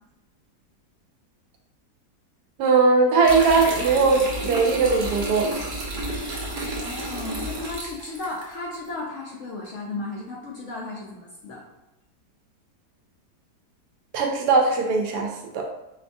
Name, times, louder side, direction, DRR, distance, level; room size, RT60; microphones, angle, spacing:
voice 1, 2.6-5.5 14.1-15.7, right 4 dB, 75° right, 2 dB, 1.1 m, -20 dB
sound 1, 3.2-8.5, right 1 dB, 60° right, 0.5 m, -31 dB
voice 2, 6.6-11.6, left 2 dB, 65° left, -3 dB, 0.8 m, -35 dB
4.6 x 2.2 x 2.6 m, 0.90 s
omnidirectional pair, 1.8 m